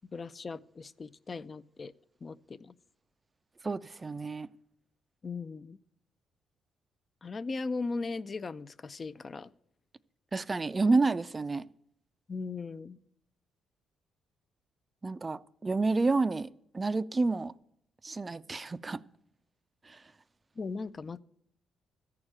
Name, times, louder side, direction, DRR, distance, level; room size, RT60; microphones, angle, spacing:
voice 1, 0.1-1.9 2.2-2.7 5.2-5.8 7.2-9.5 12.3-13.0 20.6-21.2, left 4 dB, 35° left, 0.4 m, -38 dB
voice 2, 3.6-4.5 10.3-11.6 15.0-16.5 16.7-17.5 18.0-19.0 19.9-20.0, right 3 dB, 25° right, 0.4 m, -29 dB
13.5 x 4.8 x 8.7 m
cardioid pair, 90°, 0 cm